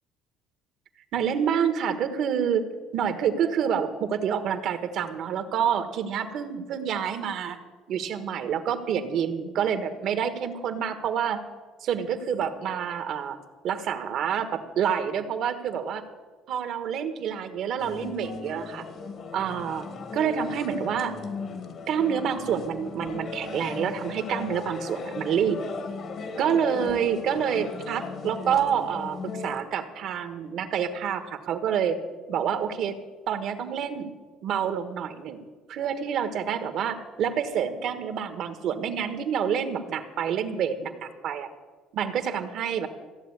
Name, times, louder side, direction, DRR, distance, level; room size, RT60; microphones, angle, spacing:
voice 1, 1.1-2.7 2.9-7.6 7.9-11.4 11.8-13.4 13.6-16.0 16.5-18.8 19.3-19.9 20.1-21.2 21.9-25.6 26.4-32.0 32.3-33.0 33.3-34.1 34.4-35.4 35.7-41.5 41.9-42.9, right 8 dB, 55° right, 9 dB, 1.4 m, -28 dB
sound 1, 17.8-29.6, left 4 dB, 45° left, 1.4 m, -37 dB
15.0 x 7.6 x 9.8 m, 1.4 s
cardioid pair, 145°, 0 cm